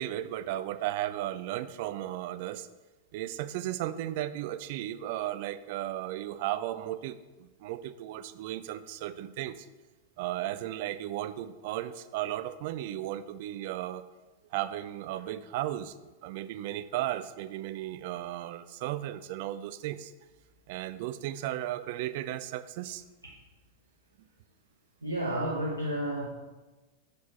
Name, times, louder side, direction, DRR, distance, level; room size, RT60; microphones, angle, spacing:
voice 1, 0.0-2.7 3.1-9.7 10.2-14.0 14.5-16.0 16.2-20.1 20.7-23.0, right 13 dB, 50° right, 13 dB, 0.3 m, -35 dB
voice 2, 25.0-26.3, right 1 dB, 80° right, -2 dB, 0.8 m, -31 dB
6.4 x 4.1 x 4.2 m, 1.2 s
figure-of-eight pair, 90°, 0 cm